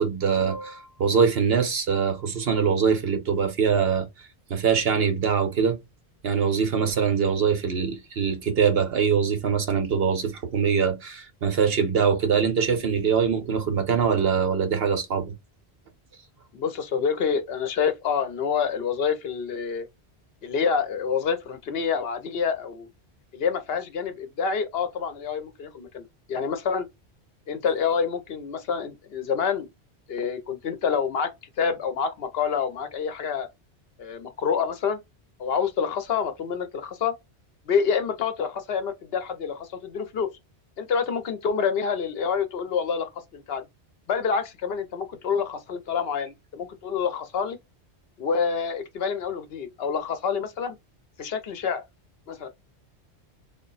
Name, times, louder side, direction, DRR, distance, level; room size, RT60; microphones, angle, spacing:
voice 1, 0.0-4.1 4.5-5.8 6.2-15.3, right 6 dB, 60° right, 1.1 m, -23 dB
voice 2, 16.5-19.9 20.4-22.9 23.3-26.9 27.5-29.7 30.1-31.3 31.6-33.5 34.0-35.0 35.4-37.1 37.7-40.3 40.8-43.7 44.1-47.6 48.2-50.8 51.2-51.8 52.3-52.5, left 6 dB, 65° left, 0.8 m, -27 dB
3.7 x 2.1 x 3.9 m
omnidirectional pair, 1.1 m